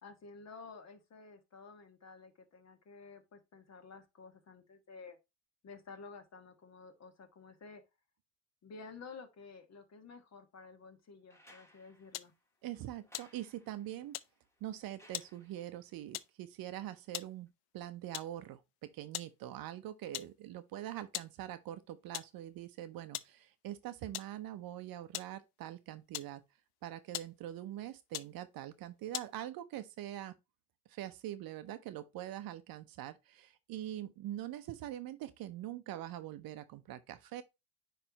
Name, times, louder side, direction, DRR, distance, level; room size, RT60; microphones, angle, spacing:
voice 1, 0.0-5.2 5.6-7.8 8.6-12.3, left 4 dB, 35° left, 1.7 m, -52 dB
sound 1, 11.3-15.9 17.5-17.6, equal, 5° left, 1.5 m, -64 dB
sound 2, 12.1-12.4 13.0-13.8 14.1-14.4 15.1-15.4 16.1-16.4 17.0-17.4 18.1-18.4 19.1-19.4 19.7-19.8 20.1-20.5 21.1-21.4 22.1-22.4 23.1-23.4 24.1-24.4 25.1-25.4 26.1-26.6 27.1-27.4 28.1-28.4 29.1-29.4, left 15 dB, 55° left, 0.6 m, -42 dB
voice 2, 12.6-14.2 14.6-26.4 26.8-30.4 30.9-37.4, right 13 dB, 50° right, 0.8 m, -44 dB
9.7 x 3.4 x 2.8 m
hypercardioid pair, 80°, 46 cm